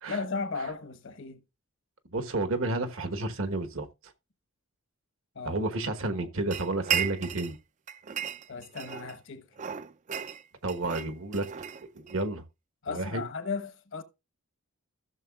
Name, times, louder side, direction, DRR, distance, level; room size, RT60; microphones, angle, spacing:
voice 1, 0.1-1.4 5.3-5.6 7.0-7.2 8.5-9.7 12.8-14.0, left 4 dB, 60° left, 1.2 m, -36 dB
voice 2, 2.1-3.9 5.4-7.6 10.6-11.5 11.9-12.4 12.9-13.2, right 2 dB, 65° right, 1.2 m, -31 dB
sound 1, 6.5-7.6 7.9-9.2 9.6-12.2, right 8 dB, 35° right, 0.4 m, -34 dB
15.5 x 6.8 x 2.3 m
head